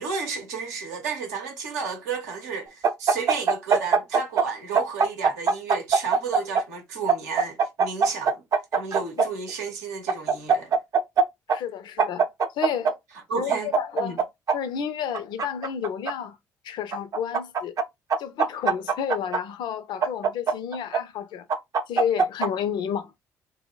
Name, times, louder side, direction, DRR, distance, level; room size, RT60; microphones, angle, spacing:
voice 1, 0.0-8.4 8.7-10.7 13.3-13.7 14.0-14.2, right 5 dB, 85° right, 0.7 m, -32 dB
sound 1, 2.8-4.5 4.8-6.6 7.1-9.3 10.1-11.2 11.5-11.6 12.0-12.9 13.5-14.6 15.1-16.1 16.9-17.8 18.1-19.4 20.0-21.0 21.5-22.5, right 5 dB, 45° right, 0.5 m, -21 dB
voice 2, 11.5-12.3 12.5-12.9 13.3-14.2 14.5-16.4 16.6-17.7 18.2-21.5 21.9-23.1, left 8 dB, 60° left, 0.4 m, -31 dB
2.1 x 2.0 x 3.7 m
hypercardioid pair, 50°, 8 cm